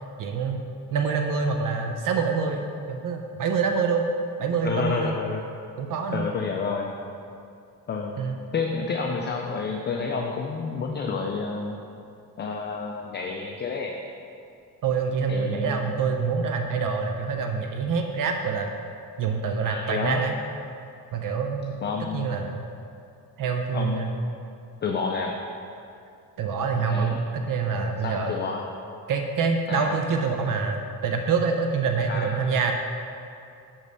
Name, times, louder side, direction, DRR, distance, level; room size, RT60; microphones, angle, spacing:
voice 1, 0.2-0.6 0.9-4.0 4.4-5.2 5.8-6.2 8.2-8.4 14.8-18.7 19.2-20.4 21.1-21.8 22.1-22.6 23.4-24.1 26.4-28.4 29.1-32.7, right 5 dB, 60° right, 4 dB, 0.6 m, -26 dB
voice 2, 4.6-5.4 6.1-6.9 7.9-8.2 8.5-11.8 12.4-13.9 15.3-15.9 19.6-20.2 21.8-22.3 23.7-24.1 24.8-25.3 26.8-27.2 28.0-28.6 29.7-30.1 32.1-32.4, left 5 dB, 30° left, 1 dB, 0.4 m, -29 dB
5.4 x 5.2 x 6.2 m, 2.6 s
cardioid pair, 160°, 37 cm